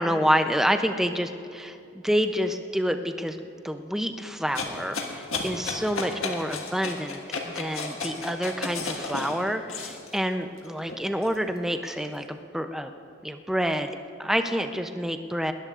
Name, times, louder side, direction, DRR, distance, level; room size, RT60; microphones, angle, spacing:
voice 1, 0.0-1.8 2.0-3.4 3.6-12.9 13.2-13.9 14.2-15.5, equal, ahead, 6 dB, 0.5 m, -28 dB
sound 1, 4.5-10.2 10.6-12.1, left 4 dB, 90° left, 1.6 m, -33 dB
20.0 x 19.5 x 2.5 m, 2.6 s
head